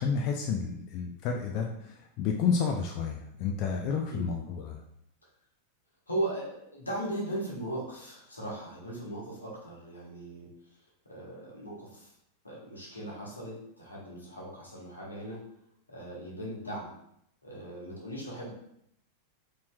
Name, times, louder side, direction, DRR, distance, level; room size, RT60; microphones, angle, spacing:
voice 1, 0.0-4.8, left 6 dB, 40° left, 2 dB, 0.4 m, -30 dB
voice 2, 6.1-10.5 11.1-12.1 12.4-15.4 15.9-16.9 17.4-18.5, right 1 dB, 80° left, -5 dB, 1.2 m, -38 dB
4.1 x 3.1 x 2.2 m, 0.75 s
figure-of-eight pair, 90°, 0 cm